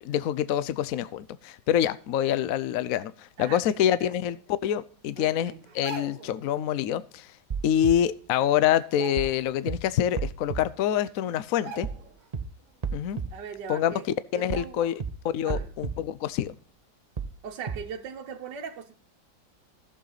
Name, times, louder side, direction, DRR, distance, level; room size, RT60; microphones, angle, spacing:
voice 1, 0.0-4.4 4.6-7.3 7.6-11.9 12.9-13.2 13.7-13.9 14.3-14.9 15.3-16.5, left 10 dB, 70° left, 0.8 m, -26 dB
voice 2, 3.4-4.1 5.2-5.6 13.3-14.1 14.3-14.9 15.4-15.7 17.4-18.9, right 7 dB, 70° right, 1.6 m, -39 dB
sound 1, 5.6-6.4 7.8-7.9 8.2-8.5 8.9-9.7 10.1-10.2 11.0-11.1 11.6-12.2 12.6-12.8, right 3 dB, 50° right, 1.9 m, -41 dB
sound 2, 7.5-7.9 9.2-9.4 9.7-9.8 10.2-10.6 11.8-12.0 12.3-12.4 12.8-13.3 14.5-14.7 15.0-15.1 15.5-15.9 17.2-17.4 17.7-17.8, right 6 dB, 90° right, 0.3 m, -32 dB
14.5 x 7.0 x 4.0 m
omnidirectional pair, 2.0 m